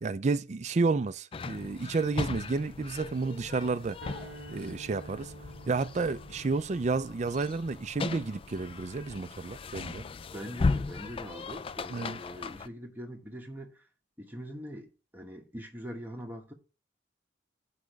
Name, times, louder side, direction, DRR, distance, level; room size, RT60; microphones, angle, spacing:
voice 1, 0.0-4.0 4.5-5.3 5.7-10.0 11.9-12.2, right 4 dB, 40° right, 0.4 m, -31 dB
sound 1, 1.3-12.7, left 4 dB, 30° left, 0.3 m, -37 dB
sound 2, 4.0-10.3, right 2 dB, 90° right, 0.8 m, -51 dB
voice 2, 10.1-13.9 14.2-16.5, equal, 10° right, 1.1 m, -43 dB
8.4 x 5.0 x 4.7 m
head